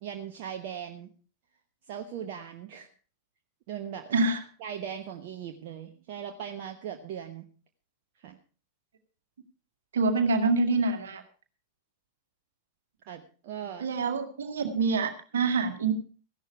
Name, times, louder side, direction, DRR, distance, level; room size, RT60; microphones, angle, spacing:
voice 1, 0.0-1.1 1.9-2.9 3.7-4.3 4.6-7.5 8.2-8.4 13.1-13.9, right 9 dB, 50° right, 5 dB, 1.1 m, -39 dB
voice 2, 9.9-11.2 13.8-15.9, right 3 dB, 65° right, 7 dB, 2.0 m, -26 dB
15.0 x 11.5 x 4.7 m, 0.38 s
figure-of-eight pair, 90°, 0 cm